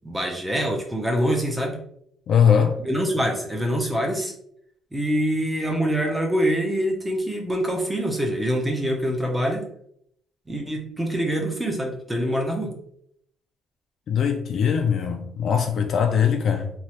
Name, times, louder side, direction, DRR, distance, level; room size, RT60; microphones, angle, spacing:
voice 1, 0.0-1.8 2.8-4.3 4.9-9.7 10.5-12.7, equal, 10° right, 0.5 m, -25 dB
voice 2, 2.3-2.8 14.1-16.7, left 7 dB, 45° left, 0.3 m, -21 dB
3.1 x 2.3 x 2.8 m
cardioid pair, 165°, 0 cm